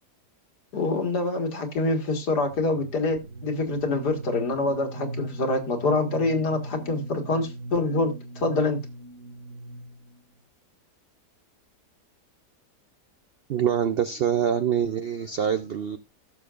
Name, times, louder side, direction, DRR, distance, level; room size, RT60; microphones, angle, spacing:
voice 1, 0.7-8.8, left 2 dB, 75° left, 2.3 m, -26 dB
sound 1, 2.5-10.2, right 1 dB, 35° right, 1.2 m, -39 dB
voice 2, 13.5-16.0, right 8 dB, 80° right, 0.5 m, -25 dB
16.0 x 6.8 x 2.5 m
omnidirectional pair, 1.8 m